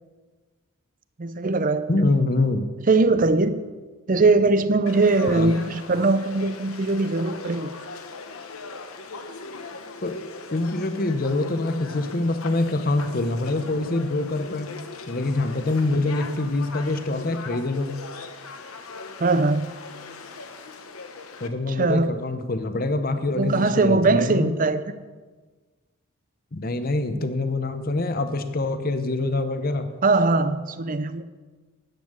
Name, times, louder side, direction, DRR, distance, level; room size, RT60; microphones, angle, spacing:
voice 1, 1.2-2.1 2.9-3.6 4.1-7.7 19.2-19.7 21.7-22.2 23.3-24.8 30.0-31.2, right 3 dB, 35° right, 0.5 m, -21 dB
voice 2, 1.9-2.7 5.3-5.5 10.0-10.2 10.5-14.7 15.1-17.9 21.4-24.5 26.5-29.9, left 2 dB, 40° left, 0.8 m, -25 dB
Conversation / Crowd, 4.9-21.5, left 4 dB, 75° left, 1.0 m, -39 dB
10.5 x 8.5 x 6.5 m
head